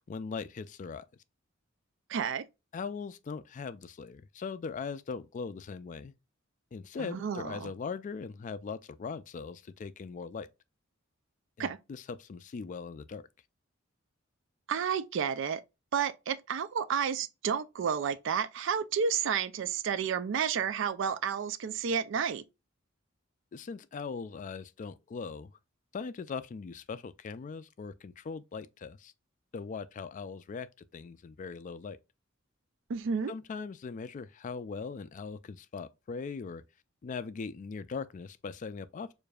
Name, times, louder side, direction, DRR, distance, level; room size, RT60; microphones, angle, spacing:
voice 1, 0.1-1.1 2.7-6.1 6.7-10.5 11.6-13.3 23.5-25.5 25.9-29.1 29.5-30.7 30.9-32.0 33.3-36.6 37.0-39.1, left 5 dB, 40° left, 0.3 m, -40 dB
voice 2, 2.1-2.4 7.0-7.7 11.6-11.8 14.7-15.6 15.9-22.4 32.9-33.3, right 7 dB, 65° right, 0.4 m, -31 dB
6.6 x 2.5 x 2.3 m
head